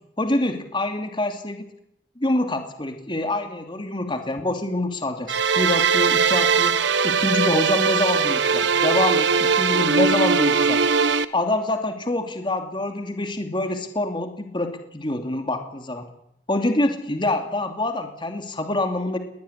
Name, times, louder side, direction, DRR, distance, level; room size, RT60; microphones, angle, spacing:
voice 1, 0.2-1.6 2.2-6.8 7.0-10.8 11.3-16.1 16.5-19.2, left 1 dB, 25° left, 5 dB, 2.7 m, -26 dB
sound 1, 5.3-11.3, right 5 dB, 80° right, 1.2 m, -20 dB
22.0 x 18.5 x 10.0 m, 0.74 s
head